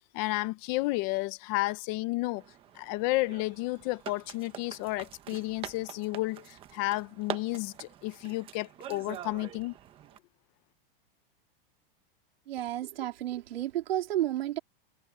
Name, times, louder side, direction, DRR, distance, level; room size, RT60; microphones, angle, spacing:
voice 1, 0.1-2.4 2.7-9.7, left 20 dB, 30° left, 0.7 m, -32 dB
sound 1, 2.4-10.2, right 11 dB, 20° right, 1.1 m, -45 dB
voice 2, 12.5-14.6, right 13 dB, 90° right, 3.1 m, -31 dB
supercardioid pair, 170°, 29 cm